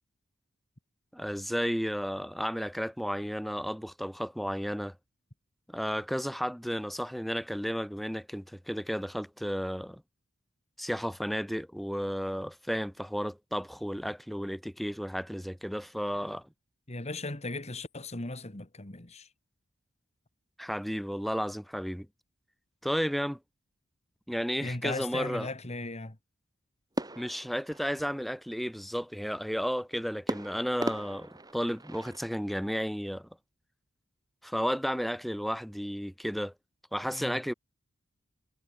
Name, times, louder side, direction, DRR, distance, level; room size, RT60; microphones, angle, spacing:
voice 1, 1.1-4.9 5.7-10.0 10.8-16.4 20.6-22.1 22.8-23.4 24.3-25.5 27.2-33.3 34.4-36.5 36.9-37.5, equal, ahead, 2.9 m, -33 dB
voice 2, 16.9-19.3 24.6-26.2 37.1-37.4, left 2 dB, 30° left, 2.0 m, -37 dB
sound 1, 27.0-28.5 30.3-32.4, right 1 dB, 20° right, 2.5 m, -38 dB
head